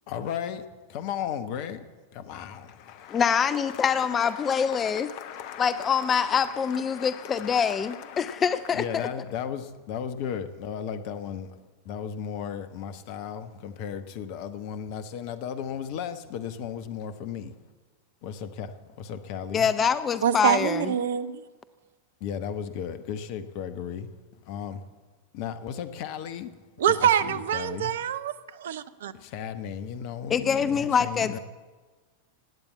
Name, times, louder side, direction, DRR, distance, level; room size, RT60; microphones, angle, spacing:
voice 1, 0.1-1.9 2.1-11.5 11.8-17.5 18.2-19.7 22.2-24.1 24.5-24.8 25.3-26.5 26.9-27.0 27.3-27.9 29.1-31.4, left 8 dB, 45° left, 1.1 m, -36 dB
voice 2, 3.1-5.1 5.6-9.1 19.5-20.9 30.3-31.4, left 7 dB, 25° left, 0.5 m, -25 dB
voice 3, 20.2-21.4 26.8-29.1, right 9 dB, 60° right, 0.7 m, -25 dB
17.0 x 8.9 x 8.5 m
figure-of-eight pair, 90°, 0 cm